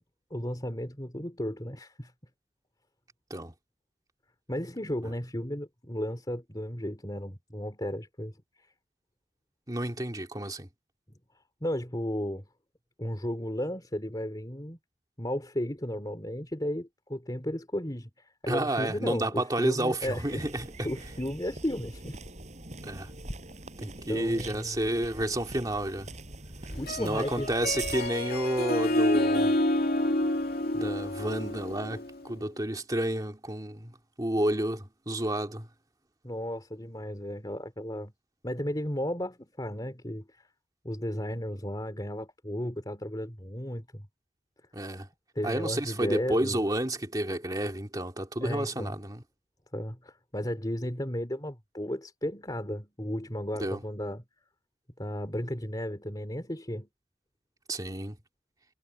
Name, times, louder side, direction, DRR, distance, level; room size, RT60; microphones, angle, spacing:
voice 1, 0.3-2.1 4.5-8.4 11.6-12.5 13.0-14.8 15.2-20.4 20.8-22.2 23.8-24.8 26.8-27.5 36.2-38.1 38.4-40.5 40.8-44.1 45.3-46.6 48.4-49.0 49.7-54.2 55.0-56.9, equal, 20° left, 3.2 m, -34 dB
voice 2, 9.7-10.7 18.5-20.9 22.8-23.1 23.8-26.1 26.9-29.5 30.7-35.7 44.7-45.1 45.4-49.2 53.6-53.8 57.7-58.2, right 1 dB, 20° right, 2.6 m, -31 dB
sound 1, 20.0-28.1, right 2 dB, 40° right, 6.4 m, -43 dB
Harp, 26.7-32.3, left 1 dB, 55° left, 2.5 m, -28 dB
head